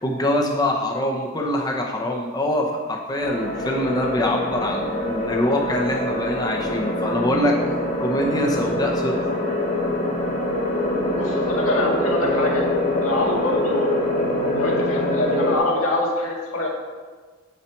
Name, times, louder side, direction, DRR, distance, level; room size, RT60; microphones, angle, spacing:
voice 1, 0.0-7.6 8.0-9.2, left 1 dB, 20° left, 0 dB, 0.7 m, -24 dB
sound 1, 3.2-15.6, left 1 dB, 40° left, 1.2 m, -24 dB
voice 2, 11.1-12.7 13.0-14.0 14.6-16.7, left 2 dB, 90° left, -2 dB, 1.8 m, -25 dB
8.2 x 5.9 x 4.5 m, 1.5 s
head